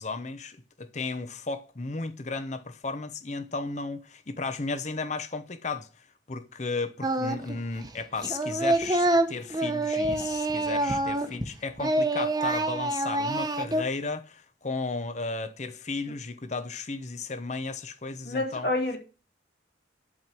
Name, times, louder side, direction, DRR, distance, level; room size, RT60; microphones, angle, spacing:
voice 1, 0.0-5.9 6.3-18.7, left 3 dB, 40° left, 0.8 m, -34 dB
Singing, 7.0-7.6 7.8-11.5 11.8-13.8, right 1 dB, 20° right, 1.0 m, -26 dB
voice 2, 18.2-19.0, left 2 dB, 60° left, 3.8 m, -28 dB
11.0 x 4.6 x 7.5 m
head